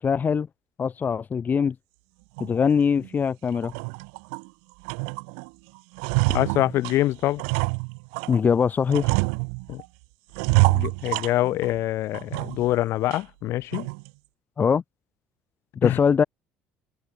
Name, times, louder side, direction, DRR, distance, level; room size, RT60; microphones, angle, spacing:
voice 1, 0.0-0.5 0.8-1.7 2.4-3.7 8.3-9.1 14.6-14.8 15.8-16.2, left 6 dB, 35° left, 1.6 m, -22 dB
sound 1, 2.4-2.5 3.0-3.1 3.6-4.5 4.8-5.5 5.8-8.4 8.9-9.8 10.3-11.8 12.1-12.8 13.1-13.2 13.7-14.1, right 40 dB or more, 80° right, 6.5 m, -26 dB
voice 2, 6.3-7.4 9.7-9.8 10.6-13.9 15.8-16.0, left 15 dB, 65° left, 7.6 m, -25 dB
supercardioid pair, 75°, 5 cm